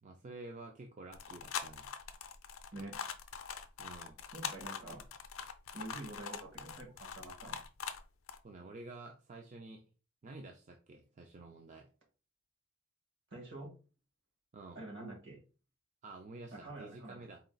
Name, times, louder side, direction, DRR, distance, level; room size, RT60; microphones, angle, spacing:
voice 1, 0.0-1.9 3.8-4.2 8.4-9.8 10.2-11.9 14.5-14.8 16.0-17.4, right 2 dB, 35° right, 2 dB, 0.4 m, -50 dB
sound 1, 1.1-8.0 8.3-8.4, left 7 dB, 70° left, 0.5 m, -43 dB
voice 2, 4.3-5.0 5.7-7.6 13.3-13.7 14.7-15.4 16.5-17.2, right 2 dB, 65° right, -1 dB, 1.6 m, -47 dB
4.1 x 2.3 x 3.9 m, 0.34 s
head